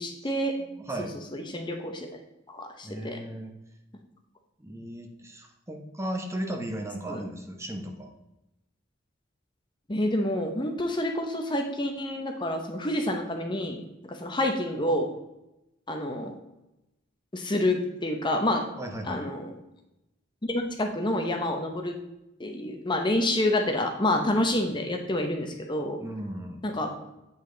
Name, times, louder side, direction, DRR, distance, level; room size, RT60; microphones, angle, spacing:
voice 1, 0.0-0.6 1.3-2.2 2.5-3.2 7.1-7.3 9.9-13.8 14.1-15.1 15.9-16.3 17.3-18.6 19.1-19.5 20.4-22.0 22.4-26.0 26.6-26.9, left 1 dB, 25° left, 4 dB, 0.8 m, -28 dB
voice 2, 0.6-1.1 2.8-3.5 4.6-8.1 18.8-19.2 26.0-26.6, right 1 dB, 15° right, 3 dB, 0.9 m, -36 dB
8.5 x 5.4 x 3.8 m, 0.92 s
head